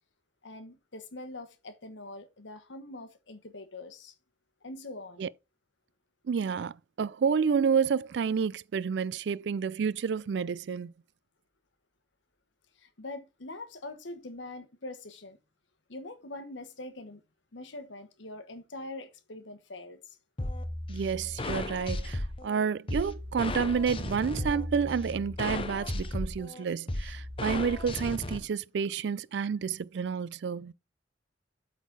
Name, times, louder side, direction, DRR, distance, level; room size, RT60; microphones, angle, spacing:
voice 1, 0.4-4.1 4.6-5.3 12.8-15.4 15.9-17.2 17.5-20.2, left 2 dB, 75° left, 1.2 m, -43 dB
voice 2, 6.3-10.9 20.9-30.7, right 6 dB, 65° right, 0.3 m, -30 dB
sound 1, 20.4-28.4, left 1 dB, 30° left, 0.7 m, -35 dB
8.2 x 4.0 x 4.6 m
head